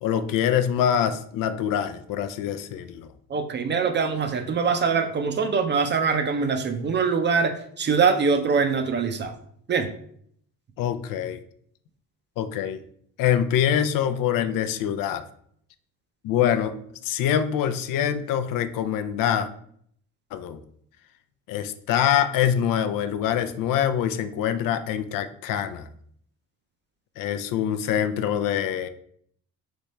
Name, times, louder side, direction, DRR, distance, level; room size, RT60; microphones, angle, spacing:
voice 1, 0.0-3.1 10.8-11.4 12.4-12.8 13.2-15.2 16.2-16.7 17.0-19.5 20.3-20.6 21.5-25.9 27.2-28.9, left 9 dB, 70° left, 11 dB, 0.5 m, -24 dB
voice 2, 3.3-9.3 9.7-9.9, right 5 dB, 30° right, 7 dB, 0.5 m, -23 dB
3.5 x 3.2 x 4.0 m, 0.64 s
cardioid pair, 110°, 34 cm